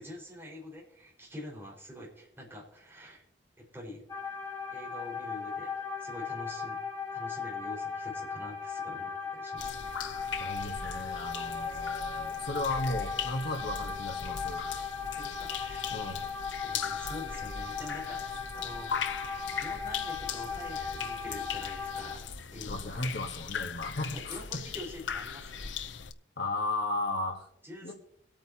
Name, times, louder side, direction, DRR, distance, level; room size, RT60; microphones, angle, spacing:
voice 1, 0.0-3.2 3.6-4.0 4.7-6.8 7.1-9.7 15.0-15.9 16.6-19.0 19.5-22.8 24.1-25.7 27.6-27.9, left 1 dB, 15° right, -4 dB, 5.1 m, -46 dB
sound 1, 4.1-22.1, left 5 dB, 20° left, 2.3 m, -37 dB
sound 2, 9.6-26.1, left 7 dB, 85° left, 0.7 m, -39 dB
voice 2, 10.4-14.6 15.9-16.2 22.6-24.4 26.4-27.5 27.8-27.9, left 2 dB, 60° left, 3 dB, 1.6 m, -35 dB
24.0 x 8.8 x 2.9 m, 0.71 s
head